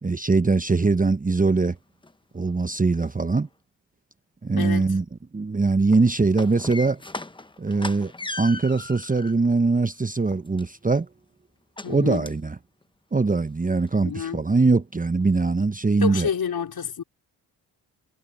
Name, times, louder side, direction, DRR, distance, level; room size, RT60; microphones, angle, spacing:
voice 1, 0.0-1.8 2.3-3.5 4.4-5.0 5.3-7.0 7.6-8.1 8.4-11.1 11.9-12.6 13.1-16.3, right 3 dB, 20° right, 1.1 m, -22 dB
sound 1, 1.6-1.7 2.0-2.1 2.5-3.1 5.8-9.4 9.9-11.0 11.8-11.9 12.3-12.5 12.8-12.9 13.3-13.4 13.8-13.9, left 2 dB, 10° left, 1.2 m, -37 dB
voice 2, 4.5-5.0 11.8-12.3 14.0-14.4 16.0-17.0, left 7 dB, 55° left, 5.3 m, -29 dB
hypercardioid pair, 50°, 44 cm